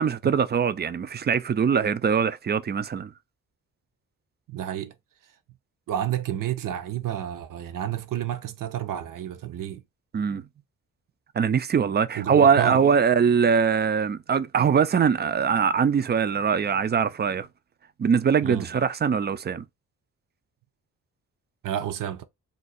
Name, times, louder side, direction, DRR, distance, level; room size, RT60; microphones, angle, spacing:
voice 1, 0.0-3.1 10.1-10.4 11.4-17.5 18.0-19.7, right 6 dB, 30° right, 0.4 m, -22 dB
voice 2, 4.5-4.9 5.9-9.8 12.1-12.8 18.4-18.7 21.6-22.2, right 11 dB, 70° right, 0.6 m, -30 dB
2.6 x 2.3 x 4.1 m
cardioid pair, 80°, 34 cm